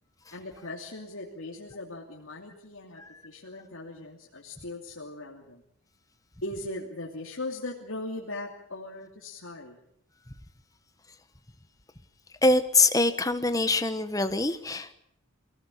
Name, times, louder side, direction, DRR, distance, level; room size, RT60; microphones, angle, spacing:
voice 1, 0.3-5.6 6.4-9.8, left 2 dB, 75° left, -2 dB, 2.8 m, -39 dB
voice 2, 12.4-14.9, left 3 dB, 15° left, 10 dB, 1.2 m, -24 dB
23.5 x 17.0 x 8.5 m, 0.73 s
head